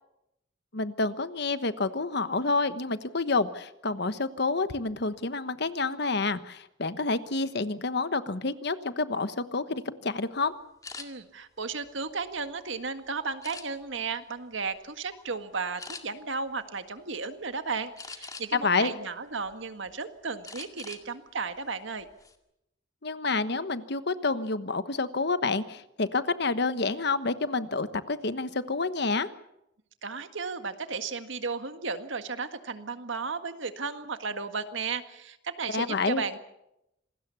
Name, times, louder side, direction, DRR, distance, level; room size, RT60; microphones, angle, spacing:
voice 1, 0.7-10.5 18.5-18.9 23.0-29.3 35.7-36.2, left 3 dB, 60° left, 12 dB, 1.2 m, -28 dB
sound 1, 10.8-11.1 11.7-12.7 13.4-14.0 14.5-14.8 15.1-15.3 15.8-16.0 18.0-18.7 19.2-19.9 20.4-21.1 21.4-21.6 22.0-22.4, left 4 dB, 20° left, 2.0 m, -43 dB
voice 2, 11.0-22.1 30.0-36.4, right 4 dB, 75° right, 9 dB, 1.8 m, -34 dB
27.0 x 20.0 x 7.0 m, 0.84 s
head